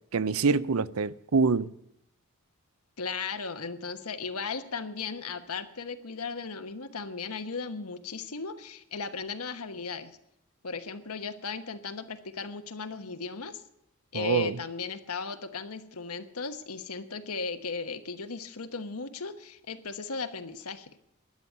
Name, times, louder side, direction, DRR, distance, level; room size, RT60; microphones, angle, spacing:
voice 1, 0.1-1.7 14.1-14.6, right 4 dB, 75° right, 0.6 m, -25 dB
voice 2, 3.0-10.1 10.6-13.6 14.1-21.0, left 4 dB, 85° left, 1.2 m, -36 dB
13.0 x 9.5 x 8.5 m
head